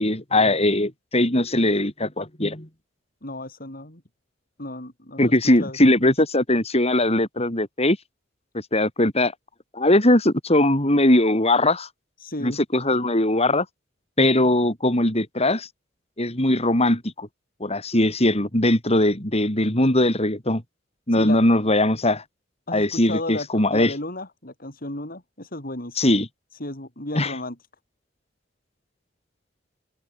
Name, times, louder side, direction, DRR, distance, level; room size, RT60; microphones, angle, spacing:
voice 1, 0.0-2.7 5.2-8.0 8.7-9.3 9.7-11.9 12.4-13.7 14.2-15.7 16.2-17.3 17.6-20.6 21.1-22.2 22.7-23.9 26.0-26.3 27.1-27.3, left 1 dB, 30° left, 6.4 m, -20 dB
voice 2, 3.2-4.0 4.6-6.1 12.2-12.6 21.2-21.4 22.7-26.0 26.6-27.6, left 1 dB, 50° left, 7.6 m, -34 dB
open air
head